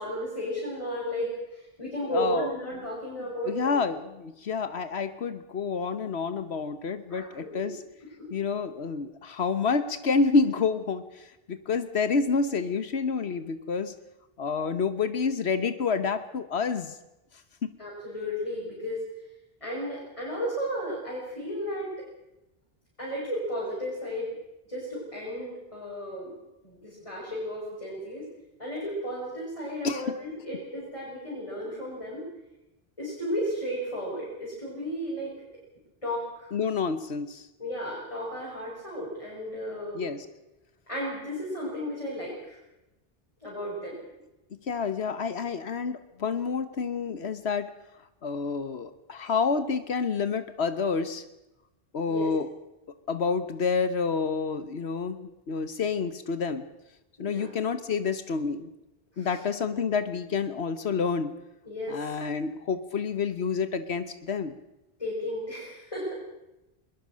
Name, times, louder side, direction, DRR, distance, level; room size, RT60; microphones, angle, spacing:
voice 1, 0.0-3.8 7.1-7.7 8.2-8.3 17.8-19.0 19.6-22.1 23.0-24.3 24.7-26.3 26.6-28.3 28.6-32.3 33.0-35.3 36.0-36.5 37.6-40.1 40.9-42.6 43.4-44.0 52.1-52.3 57.2-57.5 59.1-59.4 61.7-62.2 65.0-66.1, equal, 30° left, -6 dB, 7.1 m, -34 dB
voice 2, 2.1-2.5 3.5-7.8 8.3-13.9 14.4-17.0 17.6-17.7 29.8-30.1 36.5-37.5 39.9-40.2 44.5-47.7 48.2-51.2 51.9-52.5 53.1-56.6 57.2-58.7 59.2-61.3 61.9-64.5, left 5 dB, 80° left, 11 dB, 1.4 m, -28 dB
22.0 x 20.5 x 6.3 m, 0.93 s
omnidirectional pair, 1.1 m